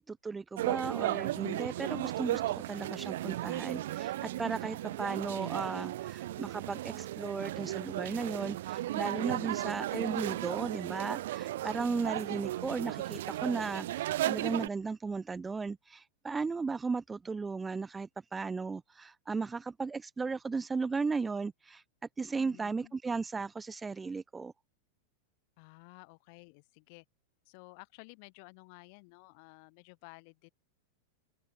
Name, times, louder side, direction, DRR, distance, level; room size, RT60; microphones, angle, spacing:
voice 1, 0.1-21.8 22.2-24.5, right 4 dB, 10° right, 0.6 m, -36 dB
sound 1, 0.6-14.7, right 14 dB, 70° right, 0.6 m, -35 dB
voice 2, 9.3-9.7 22.4-22.9 25.6-27.1 27.4-30.5, left 34 dB, 50° left, 2.3 m, -54 dB
open air
supercardioid pair, 150°, 0 cm